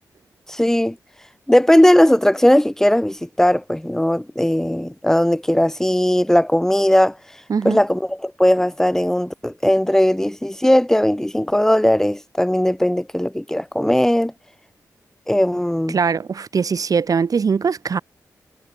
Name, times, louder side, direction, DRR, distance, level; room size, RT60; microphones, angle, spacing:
voice 1, 0.5-1.0 1.5-7.2 7.6-14.3 15.3-16.0, left 1 dB, 5° left, 3.0 m, -18 dB
voice 2, 15.9-18.0, right 5 dB, 65° right, 5.0 m, -21 dB
cardioid pair, 65°, 7 cm